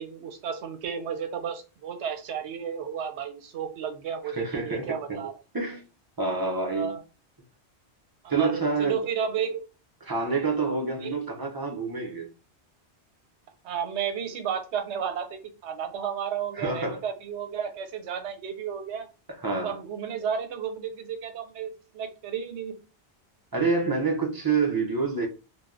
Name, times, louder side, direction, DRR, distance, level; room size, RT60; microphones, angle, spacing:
voice 1, 0.0-5.3 6.7-7.0 8.2-9.6 11.0-11.2 13.6-19.1 19.6-22.7, right 7 dB, 80° right, 0.9 m, -32 dB
voice 2, 4.2-5.2 5.5-5.8 6.2-6.9 8.3-9.0 10.1-12.3 16.5-17.0 19.4-19.8 23.5-25.3, right 4 dB, 30° right, 0.4 m, -27 dB
3.2 x 2.2 x 2.4 m
omnidirectional pair, 1.1 m